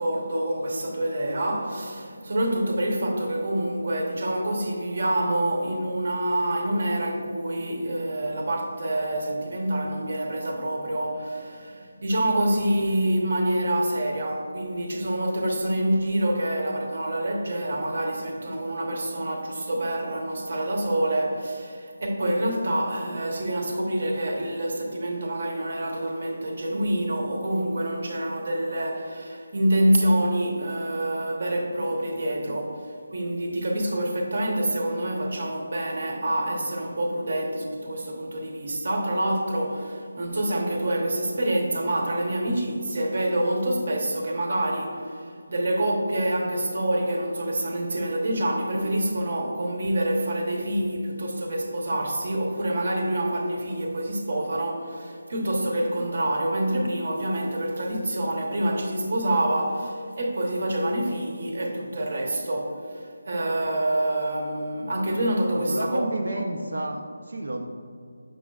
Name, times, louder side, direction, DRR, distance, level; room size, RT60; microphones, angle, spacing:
voice 1, 0.0-66.0 66.3-66.4, right 1 dB, 40° right, 1 dB, 0.8 m, -27 dB
voice 2, 65.5-67.6, right 1 dB, 80° right, 2 dB, 0.6 m, -30 dB
7.6 x 6.2 x 2.3 m, 2.3 s
figure-of-eight pair, 175°, 0 cm